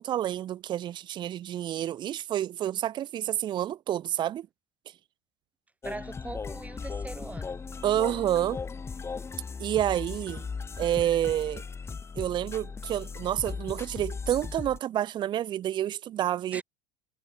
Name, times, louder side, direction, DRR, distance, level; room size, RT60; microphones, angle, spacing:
voice 1, 0.0-4.5 7.8-8.6 9.6-10.5 10.8-11.6 12.2-16.6, right 11 dB, 35° right, 0.5 m, -29 dB
sound 1, 5.8-14.8, left 5 dB, 20° left, 0.9 m, -37 dB
voice 2, 5.8-7.6 16.5-16.6, right 2 dB, 10° right, 4.0 m, -41 dB
hypercardioid pair, 85°, 14 cm